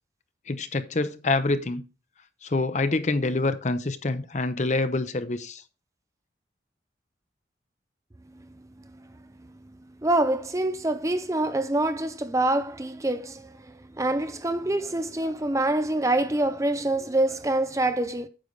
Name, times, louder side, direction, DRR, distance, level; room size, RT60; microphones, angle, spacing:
voice 1, 0.5-1.8 2.4-5.6, left 2 dB, 40° left, 0.7 m, -26 dB
voice 2, 10.0-18.3, right 1 dB, 15° right, 0.5 m, -26 dB
9.1 x 6.7 x 3.2 m
head